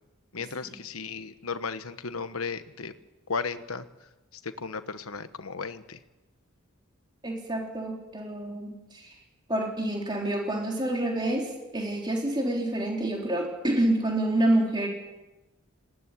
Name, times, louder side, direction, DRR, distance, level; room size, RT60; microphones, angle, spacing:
voice 1, 0.3-2.9 3.3-6.0, left 5 dB, 90° left, 11 dB, 1.2 m, -35 dB
voice 2, 7.2-9.2 9.5-14.9, right 1 dB, 20° right, 0 dB, 3.6 m, -28 dB
19.5 x 16.5 x 10.0 m, 1.1 s
head